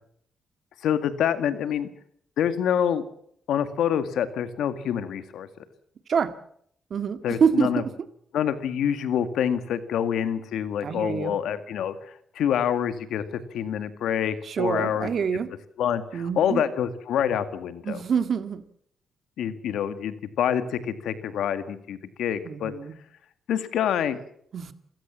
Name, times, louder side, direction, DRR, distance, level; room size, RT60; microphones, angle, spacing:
voice 1, 0.8-1.9 2.4-3.0 3.5-5.5 7.2-7.8 8.3-12.0 12.4-15.1 15.8-18.0 19.4-22.7 23.5-24.2, left 9 dB, 85° left, 11 dB, 1.9 m, -26 dB
voice 2, 6.9-7.9 10.8-11.3 14.4-15.5 16.1-16.6 17.8-18.6 22.4-22.9 24.5-24.7, right 6 dB, 60° right, 11 dB, 1.8 m, -26 dB
28.0 x 16.5 x 7.5 m, 0.69 s
cardioid pair, 85°, 0 cm